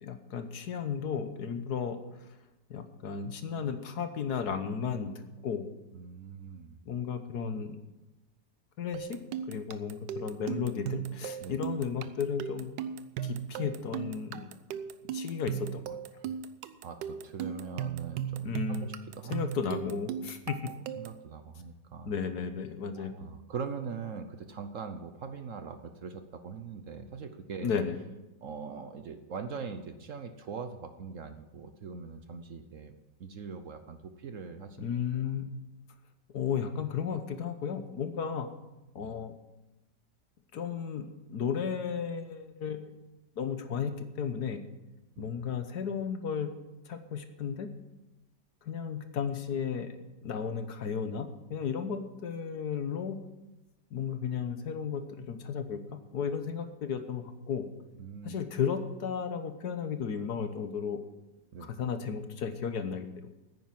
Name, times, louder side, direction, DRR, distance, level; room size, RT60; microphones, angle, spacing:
voice 1, 0.0-2.3 2.7-5.7 6.9-7.8 8.8-9.2 9.5-12.8 13.2-14.5 15.0-16.0 18.4-18.9 19.3-20.7 22.1-23.1 27.6-27.9 34.8-35.5 36.3-38.5 38.9-39.3 40.5-42.9 43.4-44.6 45.2-46.5 46.8-47.7 48.6-49.9 50.2-53.2 53.9-57.7 58.2-61.0 61.8-63.3, left 7 dB, 65° left, 9 dB, 1.5 m, -34 dB
voice 2, 5.9-6.8 11.4-11.6 16.2-16.3 16.8-18.5 19.1-19.3 21.0-22.1 23.0-27.7 28.4-32.9 33.2-34.9 39.0-39.1 45.2-45.3 58.0-58.4 61.5-61.7, right 5 dB, 55° right, 8 dB, 1.0 m, -42 dB
sound 1, 8.9-21.2, right 8 dB, 85° right, 1.3 m, -37 dB
10.0 x 9.4 x 7.6 m, 1.0 s
omnidirectional pair, 1.8 m